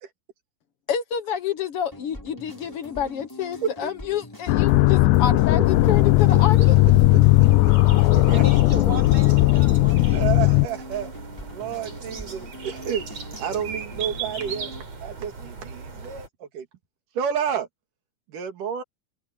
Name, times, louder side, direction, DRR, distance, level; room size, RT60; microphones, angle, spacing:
voice 1, 0.9-6.8, left 8 dB, 55° left, 1.8 m, -28 dB
sound 1, 1.9-14.8, left 1 dB, 5° left, 7.7 m, -42 dB
sound 2, 4.5-10.7, left 18 dB, 80° left, 2.1 m, -17 dB
sound 3, 5.6-16.3, right 5 dB, 55° right, 5.7 m, -37 dB
voice 2, 8.3-10.7, equal, 30° right, 6.4 m, -36 dB
voice 3, 10.1-11.1 11.5-13.0 13.4-14.7 15.0-16.7 17.2-17.7 18.3-18.8, right 8 dB, 90° right, 3.7 m, -30 dB
omnidirectional pair, 3.6 m